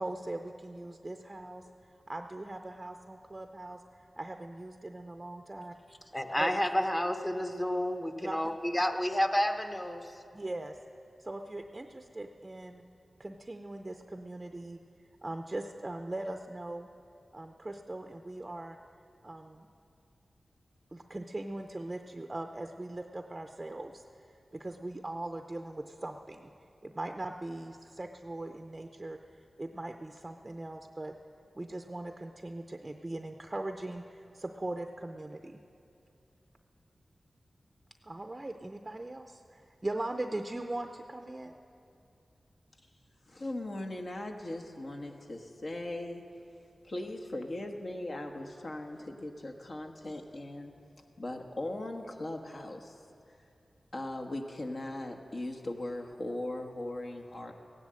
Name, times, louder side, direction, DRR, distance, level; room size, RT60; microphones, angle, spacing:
voice 1, 0.0-1.7 2.1-3.8 4.2-5.7 6.4-6.5 8.2-8.5 10.3-10.8 11.2-12.8 13.2-14.8 15.2-16.9 17.3-18.8 19.2-19.7 20.9-26.5 26.8-29.2 29.6-31.1 31.6-35.6 38.0-41.6, right 2 dB, 25° right, 5 dB, 0.6 m, -40 dB
voice 2, 6.1-10.1, equal, 15° left, 6 dB, 0.9 m, -30 dB
voice 3, 43.3-46.2 46.9-50.7 51.2-52.9 53.9-57.5, left 1 dB, 55° left, 3 dB, 1.3 m, -39 dB
16.0 x 11.0 x 7.7 m, 2.6 s
wide cardioid pair, 80°, 0 cm